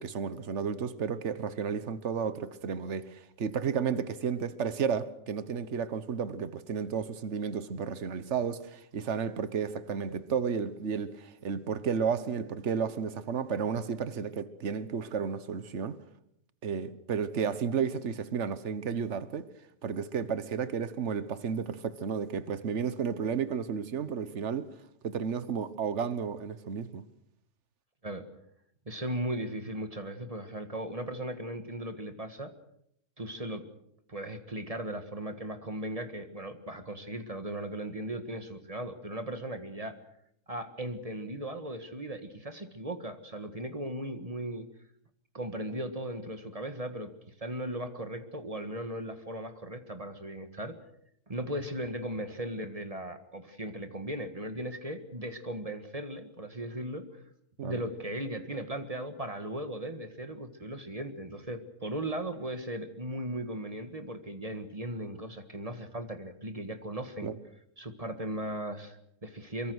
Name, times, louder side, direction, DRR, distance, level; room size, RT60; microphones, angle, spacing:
voice 1, 0.0-16.0 16.6-19.5 19.8-24.7 25.0-27.0 57.6-57.8 67.2-67.4, right 6 dB, 60° right, 1.5 m, -32 dB
voice 2, 28.8-32.5 33.2-33.6 34.1-39.9 40.5-44.7 45.3-47.1 47.4-50.7 51.3-57.0 57.6-67.3 67.8-69.7, right 1 dB, 30° right, 1.7 m, -37 dB
24.0 x 23.0 x 6.4 m
omnidirectional pair, 1.4 m